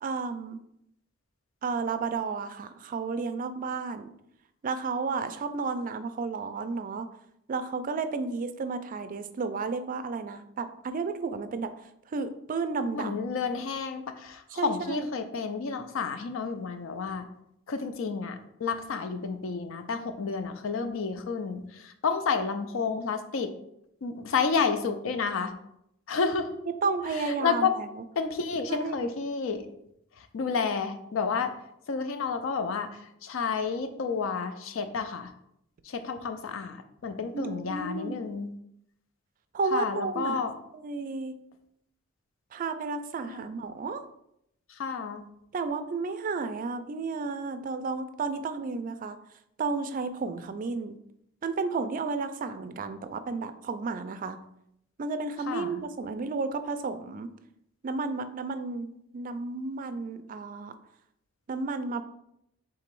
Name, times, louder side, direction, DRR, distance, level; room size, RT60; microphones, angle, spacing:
voice 1, 0.0-0.6 1.6-4.1 4.6-7.1 7.5-11.7 12.1-13.2 14.5-15.1 26.8-27.9 28.7-29.1 37.3-38.2 39.5-40.4 40.7-41.4 42.5-44.0 45.5-49.2 49.6-51.0 51.4-54.4 55.0-57.3 57.8-58.9 59.1-60.7 61.5-62.0, right 4 dB, 40° right, 10 dB, 0.3 m, -32 dB
voice 2, 12.9-17.3 17.7-23.5 24.0-25.5 26.1-26.5 27.1-27.7 28.2-29.7 30.2-31.5 31.9-35.3 35.8-38.5 39.7-40.5 43.3-43.5 44.7-45.2 55.5-55.8, left 5 dB, 70° left, 8 dB, 0.4 m, -30 dB
3.7 x 2.9 x 4.6 m, 0.77 s
head